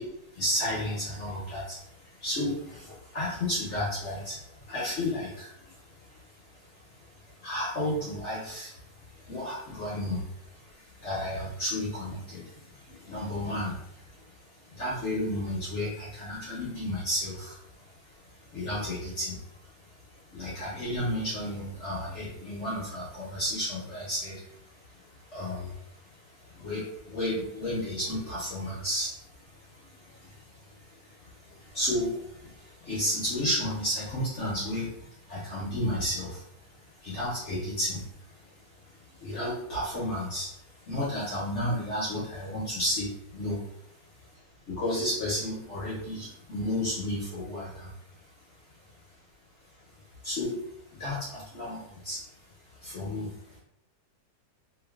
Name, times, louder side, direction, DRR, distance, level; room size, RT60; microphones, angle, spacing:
voice 1, 0.2-17.6 17.9-36.4 36.9-43.8 44.7-48.5 49.8-49.9 50.2-53.6, left 1 dB, 65° left, -6 dB, 0.7 m, -33 dB
2.9 x 2.4 x 2.3 m, 0.75 s
omnidirectional pair, 2.0 m